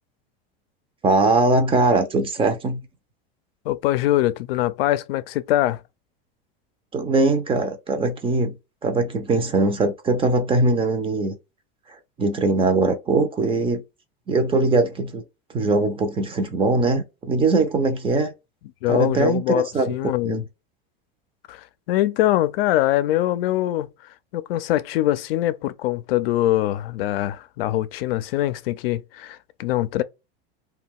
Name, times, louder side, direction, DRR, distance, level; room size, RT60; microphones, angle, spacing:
voice 1, 1.0-2.8 6.9-8.5 8.8-11.4 12.2-13.8 14.3-15.2 15.5-18.3 18.9-20.0 20.2-20.4, right 3 dB, 20° right, 0.5 m, -21 dB
voice 2, 3.7-5.8 18.8-20.4 21.5-30.0, left 14 dB, 80° left, 0.5 m, -23 dB
2.3 x 2.3 x 3.6 m
supercardioid pair, 130°, 29 cm